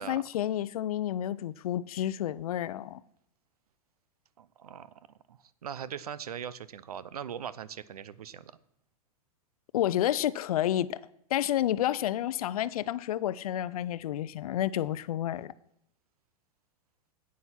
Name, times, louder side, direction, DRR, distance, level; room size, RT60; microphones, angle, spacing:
voice 1, 0.0-3.0 9.7-11.0 11.3-15.5, left 12 dB, 75° left, 0.5 m, -30 dB
voice 2, 4.4-4.9 5.3-8.5, right 8 dB, 85° right, 0.6 m, -40 dB
9.4 x 8.6 x 5.7 m
hypercardioid pair, 105°, 19 cm